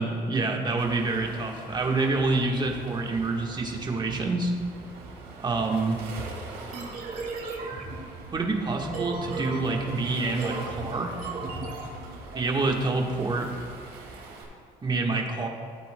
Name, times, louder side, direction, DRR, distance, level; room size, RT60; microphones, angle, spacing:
voice 1, 0.0-4.5 5.4-6.0 8.3-11.2 12.3-13.5 14.8-15.5, right 3 dB, 25° right, 1 dB, 1.3 m, -27 dB
Waves surf, 0.8-14.4, right 3 dB, 85° right, 2.3 m, -43 dB
sound 1, 6.7-12.4, right 3 dB, 55° right, 2.2 m, -37 dB
16.0 x 8.5 x 2.2 m, 2.2 s
cardioid pair, 110°, 17 cm